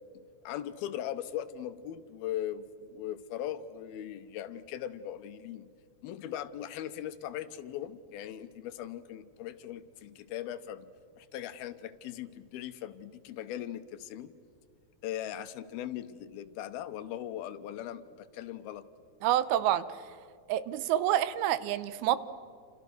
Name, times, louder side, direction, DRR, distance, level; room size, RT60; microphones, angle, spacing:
voice 1, 0.1-5.7 6.0-14.3 15.0-18.9, left 11 dB, 85° left, 12 dB, 2.8 m, -39 dB
voice 2, 19.2-20.0 20.5-22.2, right 12 dB, 80° right, 15 dB, 2.7 m, -28 dB
28.5 x 28.0 x 6.1 m, 2.1 s
omnidirectional pair, 4.4 m